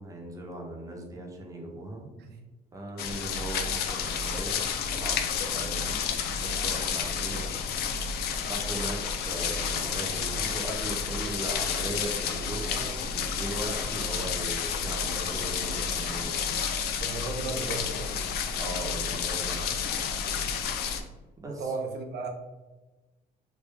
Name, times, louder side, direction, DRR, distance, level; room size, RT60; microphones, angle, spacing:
voice 1, 0.0-2.1 2.7-7.5 8.4-9.0 9.2-16.4 18.5-19.6 21.4-21.6, right 1 dB, 20° right, 0 dB, 0.8 m, -38 dB
sound 1, 3.0-21.0, left 6 dB, 70° left, 0.4 m, -30 dB
voice 2, 17.0-18.1 21.5-22.3, right 3 dB, 75° right, 3 dB, 0.6 m, -35 dB
3.3 x 2.6 x 3.3 m, 1.1 s
cardioid pair, 110°, 17 cm